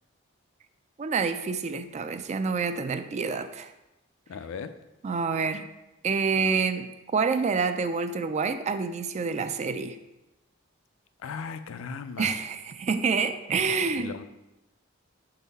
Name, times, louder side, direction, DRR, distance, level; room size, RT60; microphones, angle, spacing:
voice 1, 1.0-3.7 5.0-5.7 6.0-10.0 12.2-14.1, right 5 dB, 35° right, 10 dB, 0.3 m, -27 dB
voice 2, 4.3-4.8 11.2-12.4 14.0-14.2, left 5 dB, 70° left, 11 dB, 0.4 m, -37 dB
6.2 x 4.0 x 4.0 m, 0.96 s
head